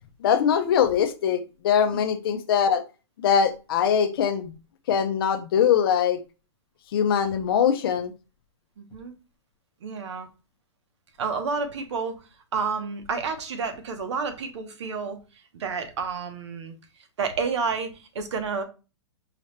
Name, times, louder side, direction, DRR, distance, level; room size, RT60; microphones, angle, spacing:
voice 1, 0.2-2.8 3.2-4.5 4.9-6.2 6.9-8.1, left 8 dB, 50° left, 0.7 m, -22 dB
voice 2, 8.8-9.1 9.8-10.3 11.2-12.2 12.5-15.2 15.6-16.7 17.2-18.6, right 5 dB, 75° right, 1.0 m, -30 dB
4.9 x 2.9 x 3.2 m
hypercardioid pair, 160°, 15 cm